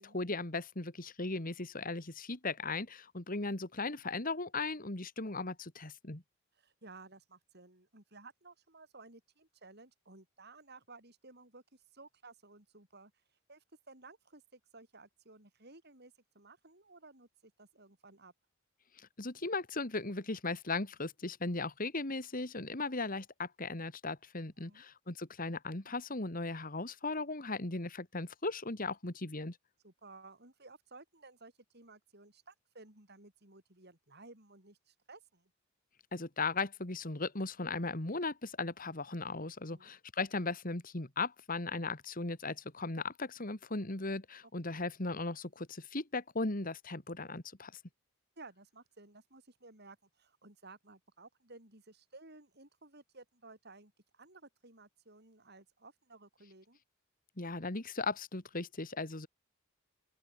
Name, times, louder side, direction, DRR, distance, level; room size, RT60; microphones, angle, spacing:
voice 1, 0.0-6.2 19.2-29.6 36.1-47.7 57.4-59.3, left 3 dB, 40° left, 2.1 m, -37 dB
voice 2, 6.5-13.1 13.5-18.3 24.6-24.8 29.8-35.5 39.7-39.9 44.7-44.8 48.4-56.8, right 3 dB, 50° right, 6.4 m, -56 dB
open air
head